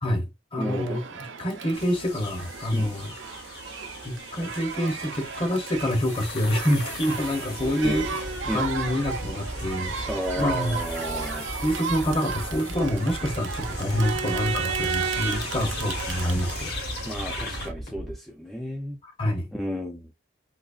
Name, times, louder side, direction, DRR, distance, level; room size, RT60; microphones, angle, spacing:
voice 1, 0.0-1.0 1.4-3.1 4.0-8.3 8.5-9.9 10.4-10.8 11.6-16.7 19.0-19.5, equal, 30° left, 0.8 m, -27 dB
voice 2, 0.6-1.0 2.7-2.9 7.8-8.0 8.5-8.7 10.1-11.5 17.1-19.0 19.5-20.1, equal, ahead, 0.4 m, -32 dB
Crowd, 0.6-17.7, right 6 dB, 85° right, 0.5 m, -34 dB
sound 1, 1.7-17.7, left 3 dB, 55° left, 1.1 m, -40 dB
sound 2, 7.5-18.1, equal, 75° left, 1.7 m, -38 dB
3.9 x 2.8 x 2.4 m
head